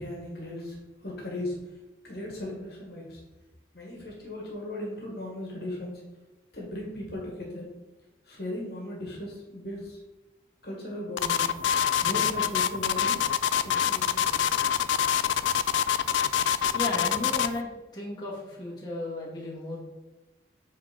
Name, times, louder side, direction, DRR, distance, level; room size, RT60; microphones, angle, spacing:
voice 1, 0.0-1.6 2.0-3.2 3.7-6.0 6.5-7.6 8.2-10.0 10.6-11.5 12.0-13.2 13.6-14.5, left 1 dB, 60° left, -2 dB, 1.7 m, -37 dB
sound 1, 11.2-17.6, left 8 dB, 85° left, 0.4 m, -25 dB
voice 2, 16.6-19.8, left 2 dB, 25° left, -6 dB, 1.9 m, -34 dB
8.3 x 3.5 x 5.1 m, 1.1 s
head